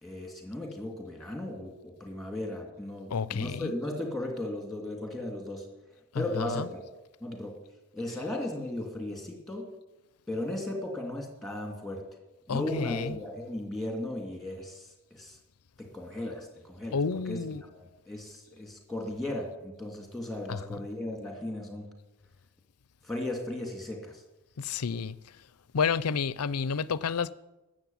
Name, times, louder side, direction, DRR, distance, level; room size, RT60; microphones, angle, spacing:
voice 1, 0.0-5.7 6.1-6.8 7.2-7.6 7.9-9.7 10.3-12.0 12.5-15.4 15.8-17.0 17.3-17.4 18.1-21.9 23.0-24.2, left 1 dB, ahead, 2.6 m, -36 dB
voice 2, 3.1-3.7 6.1-6.7 12.5-13.2 16.9-17.6 20.5-20.8 24.6-25.1 25.7-27.3, left 5 dB, 90° left, 0.6 m, -30 dB
13.0 x 7.7 x 9.3 m
head